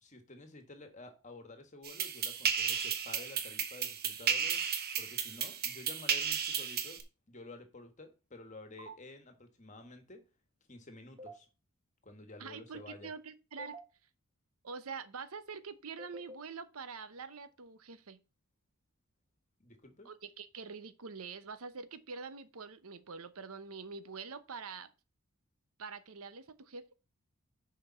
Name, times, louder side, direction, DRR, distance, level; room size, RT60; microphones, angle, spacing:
voice 1, 0.0-4.6 5.0-7.0 7.3-10.2 10.7-11.5 12.0-13.1 19.6-20.1, left 2 dB, 35° left, 1.5 m, -51 dB
sound 1, 1.8-7.0, right 7 dB, 45° right, 1.1 m, -34 dB
sound 2, 8.8-8.9 11.2-11.3 13.6-13.8 16.0-16.4, right 2 dB, 25° right, 1.4 m, -46 dB
voice 2, 12.4-13.8 14.6-18.2 20.0-24.9 25.8-26.9, right 5 dB, 75° right, 0.8 m, -45 dB
6.8 x 5.1 x 5.5 m
head